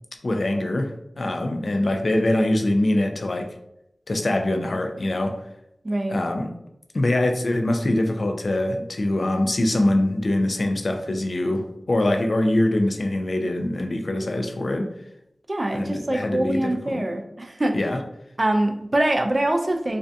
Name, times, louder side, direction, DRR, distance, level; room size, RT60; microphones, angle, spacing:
voice 1, 0.2-3.6 4.1-5.4 6.1-6.5 6.9-14.9 15.7-17.1 17.7-18.0, left 1 dB, 65° left, 5 dB, 0.3 m, -23 dB
voice 2, 5.8-6.2 15.5-17.8 18.4-20.0, right 1 dB, 40° right, 5 dB, 0.3 m, -24 dB
2.4 x 2.2 x 2.5 m, 0.81 s
wide cardioid pair, 50°, 0 cm